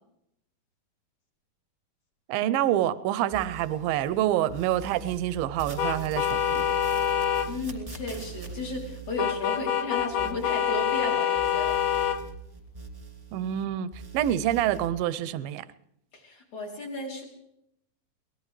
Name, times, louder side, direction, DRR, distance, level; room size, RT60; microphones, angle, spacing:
voice 1, 2.3-6.7 13.3-15.7, right 12 dB, 75° right, 15 dB, 2.3 m, -27 dB
sound 1, 3.3-4.2 4.5-11.1 11.3-13.6 13.9-14.9, right 6 dB, 15° right, 1.5 m, -42 dB
sound 2, 5.8-7.5 9.2-12.2, left 9 dB, 80° left, 2.7 m, -26 dB
voice 2, 7.3-11.8 16.1-17.2, left 2 dB, 50° left, -2 dB, 4.2 m, -34 dB
23.5 x 19.0 x 3.2 m, 0.76 s
omnidirectional pair, 4.4 m